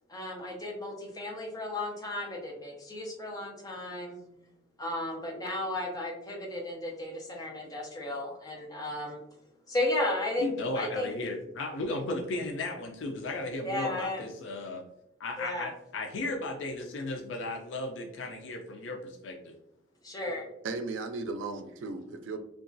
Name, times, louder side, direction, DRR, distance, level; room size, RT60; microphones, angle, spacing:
voice 1, 0.1-4.2 4.8-9.2 9.7-10.5 10.8-11.1 13.6-14.2 15.4-15.7 20.0-20.4, left 2 dB, 20° left, 0 dB, 0.6 m, -34 dB
voice 2, 10.4-14.8 15.2-19.5, left 2 dB, 75° left, 2 dB, 0.4 m, -35 dB
voice 3, 20.6-22.4, right 3 dB, 85° right, 7 dB, 0.4 m, -36 dB
2.9 x 2.3 x 2.5 m, 0.78 s
head